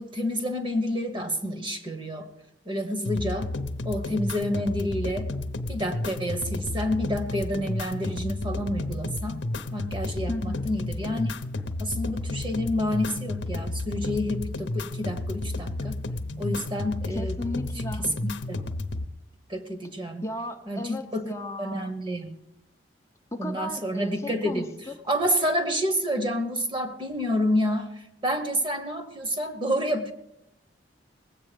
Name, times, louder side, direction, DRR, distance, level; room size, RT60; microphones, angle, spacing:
voice 1, 0.0-2.3 2.6-3.5 3.8-5.3 5.7-9.4 9.7-11.3 11.8-16.0 16.4-17.4 18.2-18.6 19.5-20.2 20.7-21.2 21.6-22.4 23.4-24.7 25.1-30.1, equal, 25° right, 7 dB, 1.2 m, -29 dB
sound 1, 3.0-19.1, left 2 dB, 70° left, 0.8 m, -32 dB
voice 2, 10.3-10.7 17.1-18.1 20.2-22.0 23.3-24.9, left 1 dB, 15° left, 2 dB, 0.7 m, -35 dB
20.0 x 8.2 x 5.1 m, 0.82 s
head